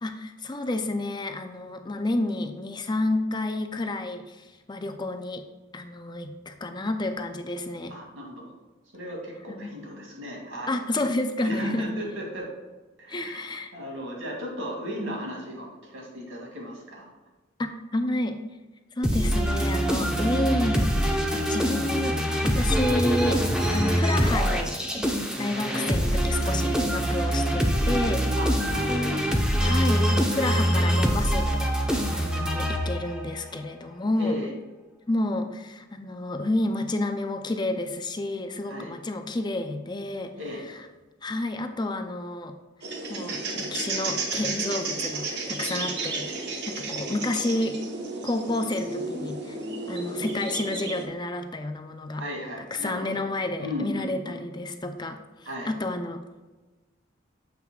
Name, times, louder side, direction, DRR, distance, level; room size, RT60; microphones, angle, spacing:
voice 1, 0.0-5.4 5.7-7.9 9.5-9.7 10.7-11.9 13.1-13.7 17.6-18.4 19.0-23.4 23.7-25.1 25.4-28.4 28.9-29.2 29.6-34.4 35.1-40.3 40.7-40.8 41.2-42.5 43.1-47.8 48.2-49.6 49.9-52.2 52.7-56.2, left 2 dB, 20° left, 6 dB, 0.5 m, -30 dB
voice 2, 7.9-8.5 8.9-10.8 11.4-12.5 13.0-17.1 25.7-25.9 28.4-29.2 34.2-34.5 38.7-39.0 40.4-40.6 52.2-53.3 53.6-54.4 55.4-55.7, equal, 75° right, -2 dB, 2.5 m, -36 dB
sound 1, 19.0-33.3, equal, 5° right, 0.8 m, -24 dB
sound 2, 42.8-51.0, right 3 dB, 55° right, 1.2 m, -32 dB
9.3 x 7.4 x 2.4 m, 1.2 s
head